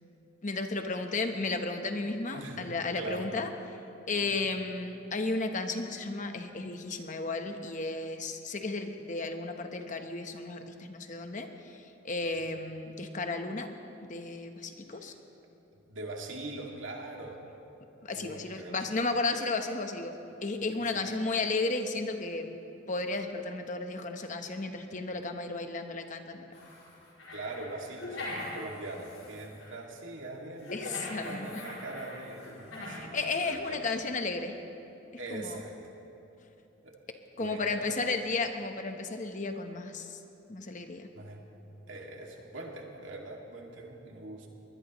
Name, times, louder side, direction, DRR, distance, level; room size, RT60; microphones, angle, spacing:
voice 1, 0.4-3.8 4.1-13.7 14.1-15.1 18.0-22.6 22.9-26.5 30.7-31.6 32.9-34.6 35.3-35.6 37.4-40.2 40.5-41.1, left 3 dB, 40° left, 6 dB, 1.0 m, -34 dB
voice 2, 2.3-3.3 4.2-4.3 12.3-12.4 14.9-15.1 15.9-17.4 18.1-18.8 20.9-21.0 27.3-33.8 35.2-35.7 36.8-37.0 37.4-38.1 41.1-41.4 41.9-44.5, right 2 dB, 75° right, 0 dB, 2.3 m, -42 dB
sound 1, 26.5-29.7 30.6-33.1 33.4-33.6, left 1 dB, 80° left, 4.6 m, -42 dB
21.5 x 20.0 x 3.1 m, 2.9 s
head